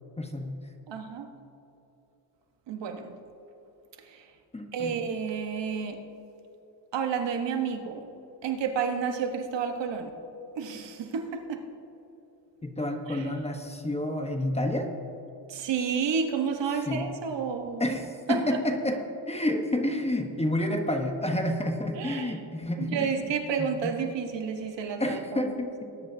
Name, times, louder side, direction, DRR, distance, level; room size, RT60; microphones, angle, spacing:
voice 1, 0.2-0.6 4.5-4.9 12.6-14.9 16.9-17.1 17.8-19.0 19.3-23.1 23.6-23.9 25.0-25.9, left 1 dB, 15° left, 4 dB, 1.1 m, -29 dB
voice 2, 0.9-1.3 2.7-3.1 4.0-4.3 4.7-6.0 6.9-8.0 8.4-10.1 10.6-11.7 13.1-13.3 15.5-18.0 18.3-18.6 22.0-22.4 22.8-25.5, right 6 dB, 70° right, 5 dB, 1.3 m, -30 dB
20.0 x 10.5 x 2.8 m, 3.0 s
cardioid pair, 105°, 45 cm